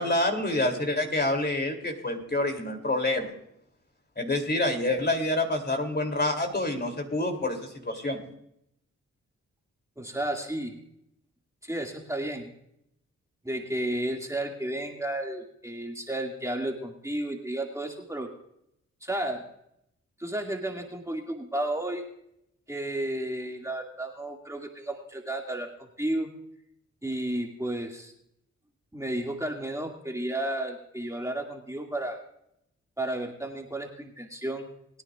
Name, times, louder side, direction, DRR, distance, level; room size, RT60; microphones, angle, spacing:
voice 1, 0.0-3.3 4.2-8.2, left 2 dB, 35° left, 4 dB, 3.0 m, -27 dB
voice 2, 10.0-10.8 11.6-12.5 13.4-18.3 19.0-19.4 20.2-22.0 22.7-26.3 27.0-28.1 28.9-32.2 33.0-34.7, right 1 dB, 10° right, 1 dB, 2.1 m, -32 dB
21.5 x 9.8 x 2.4 m, 0.77 s
supercardioid pair, 50°, 31 cm